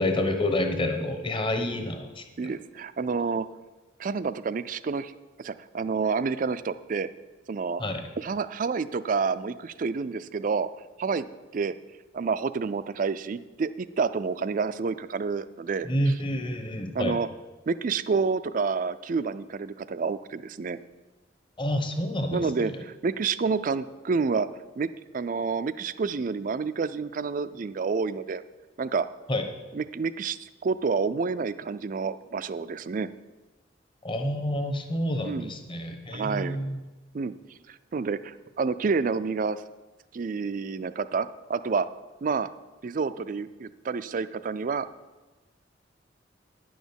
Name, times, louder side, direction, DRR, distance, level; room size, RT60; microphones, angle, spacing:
voice 1, 0.0-2.2 7.8-8.0 15.8-17.2 21.6-22.7 29.3-29.4 34.0-36.8, left 1 dB, 25° left, 5 dB, 1.0 m, -28 dB
voice 2, 2.4-3.5 4.0-5.1 5.4-7.1 7.5-7.8 8.2-10.7 11.0-11.3 11.5-11.7 12.1-16.2 16.9-17.3 17.7-20.8 22.3-24.5 24.8-24.9 25.1-28.4 28.8-29.1 29.7-33.1 35.2-35.5 36.1-36.6 37.1-37.3 37.7-39.6 40.1-41.9 42.2-42.5 42.8-44.9, right 5 dB, 45° right, 14 dB, 0.4 m, -29 dB
9.9 x 6.3 x 7.0 m, 1.2 s
head